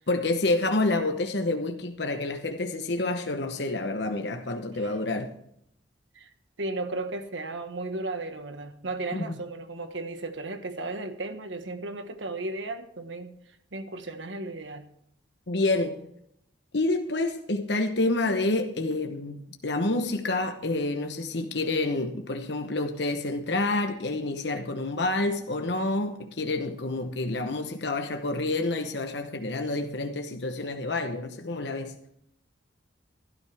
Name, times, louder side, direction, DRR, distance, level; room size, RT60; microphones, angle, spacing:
voice 1, 0.1-5.3 9.1-9.3 15.5-16.0 16.7-31.9, left 2 dB, 70° left, 1.0 m, -28 dB
voice 2, 6.6-14.9, right 2 dB, 90° right, 1.5 m, -35 dB
16.5 x 13.0 x 3.5 m
head